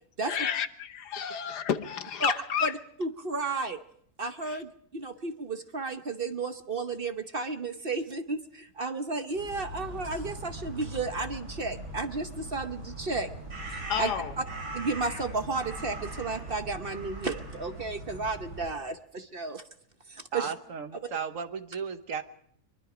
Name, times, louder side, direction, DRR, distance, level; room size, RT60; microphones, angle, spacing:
voice 1, 0.2-2.7 4.4-4.6 13.9-14.3, left 8 dB, 80° left, 1.6 m, -31 dB
voice 2, 3.0-3.8 4.2-13.3 13.7-14.1 14.7-19.6 20.1-20.5, right 3 dB, 40° right, 1.0 m, -33 dB
sound 1, 9.3-18.7, right 1 dB, 85° right, 5.8 m, -40 dB
voice 3, 20.3-22.2, right 6 dB, 55° right, 1.3 m, -35 dB
23.5 x 23.5 x 5.0 m
omnidirectional pair, 1.7 m